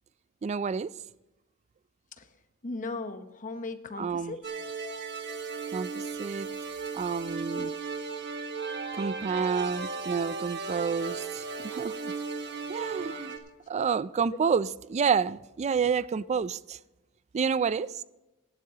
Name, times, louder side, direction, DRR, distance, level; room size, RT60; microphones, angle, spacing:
voice 1, 0.4-0.9 4.0-4.3 5.7-6.5 6.9-7.7 8.9-12.1 12.7-13.3 13.7-16.8 17.3-18.0, right 6 dB, 30° right, 0.3 m, -29 dB
voice 2, 2.6-4.4 14.3-14.4, left 3 dB, 35° left, 0.9 m, -37 dB
sound 1, 4.4-13.4, right 5 dB, 50° right, 1.3 m, -35 dB
17.0 x 11.5 x 2.9 m
head